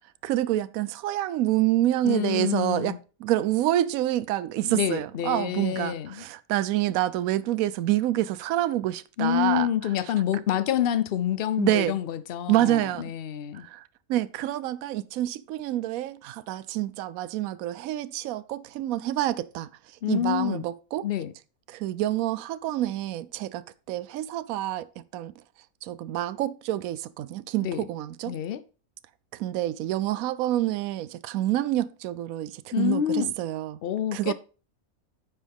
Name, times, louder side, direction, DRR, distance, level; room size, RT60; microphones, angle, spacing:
voice 1, 0.2-2.9 3.2-9.7 11.6-12.0 12.5-13.1 13.5-21.1 21.7-25.3 25.8-28.4 29.3-33.8 34.1-34.3, right 14 dB, 80° right, 1.0 m, -27 dB
voice 2, 2.0-3.0 4.6-6.2 9.2-13.6 20.0-20.6 21.0-21.3 27.6-27.8 28.3-28.6 32.7-33.3 33.8-34.3, left 11 dB, 55° left, 0.7 m, -27 dB
9.3 x 6.3 x 3.5 m
omnidirectional pair, 1.5 m